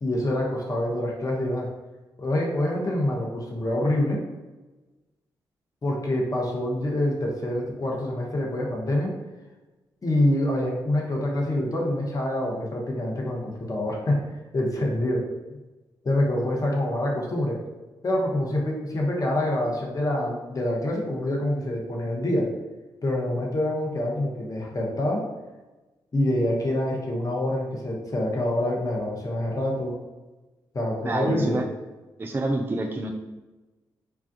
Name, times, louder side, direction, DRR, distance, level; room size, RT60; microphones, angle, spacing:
voice 1, 0.0-1.7 2.2-4.2 5.8-9.1 10.0-14.2 14.5-15.2 16.0-17.6 18.0-22.5 23.0-25.2 26.1-30.0 30.7-31.6, left 1 dB, 35° left, -1 dB, 0.8 m, -26 dB
voice 2, 31.0-31.6 32.2-33.1, right 2 dB, 20° right, 2 dB, 0.4 m, -27 dB
3.4 x 2.3 x 2.6 m, 1.2 s
supercardioid pair, 45°, 10 cm